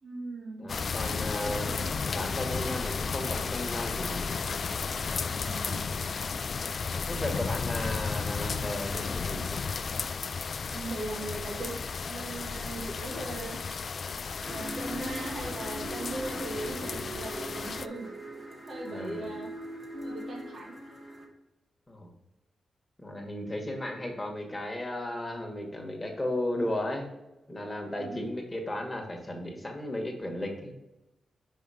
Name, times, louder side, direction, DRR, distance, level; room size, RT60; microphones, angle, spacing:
voice 1, 0.0-0.7 1.3-1.9 5.4-5.9 7.4-7.6 10.7-11.7 12.1-13.6 14.5-18.1 18.7-19.5 20.0-20.7 28.0-28.2, right 2 dB, 55° right, -2 dB, 2.1 m, -39 dB
voice 2, 0.6-1.8 2.0-4.3 7.1-9.6 18.9-19.3 21.9-22.1 23.0-27.1 27.5-30.7, left 1 dB, 15° left, 2 dB, 1.6 m, -35 dB
sound 1, 0.7-17.9, left 5 dB, 50° left, 0.3 m, -33 dB
sound 2, 14.4-21.2, right 1 dB, 40° right, 1.9 m, -40 dB
5.6 x 5.3 x 4.9 m, 0.97 s
cardioid pair, 95°, 0 cm